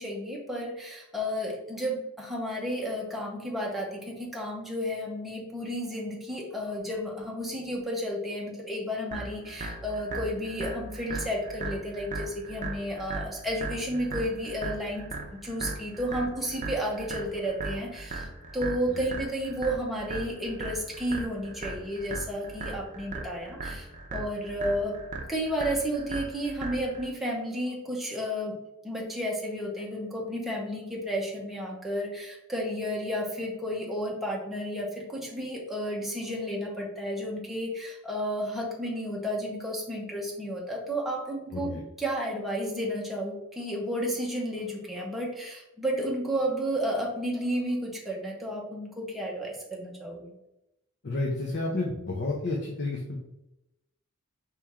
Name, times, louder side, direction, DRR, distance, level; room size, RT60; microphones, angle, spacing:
voice 1, 0.0-15.0 15.4-18.3 18.5-25.0 25.3-28.6 28.8-41.7 42.0-50.3, equal, ahead, -3 dB, 0.8 m, -32 dB
sound 1, 9.1-27.1, right 3 dB, 35° right, 0.6 m, -37 dB
voice 2, 51.0-53.2, left 2 dB, 50° left, -1 dB, 0.6 m, -31 dB
4.3 x 3.1 x 3.6 m, 0.89 s
head